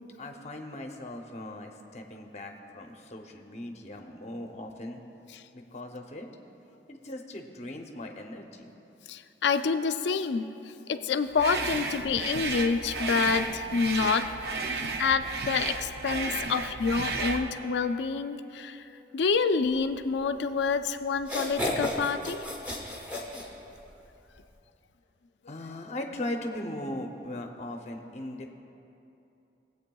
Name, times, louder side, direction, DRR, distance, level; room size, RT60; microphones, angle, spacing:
voice 1, 0.2-5.0 5.5-6.3 6.9-8.7 25.5-28.5, left 1 dB, 35° left, 3 dB, 0.7 m, -39 dB
voice 2, 9.1-14.3 15.0-22.4, left 5 dB, 75° left, 10 dB, 0.4 m, -28 dB
sound 1, 11.4-17.5, right 3 dB, 60° right, 0.6 m, -33 dB
sound 2, 20.6-20.7 21.2-24.0, left 1 dB, 10° right, 1.1 m, -33 dB
20.0 x 8.1 x 2.3 m, 2.9 s
head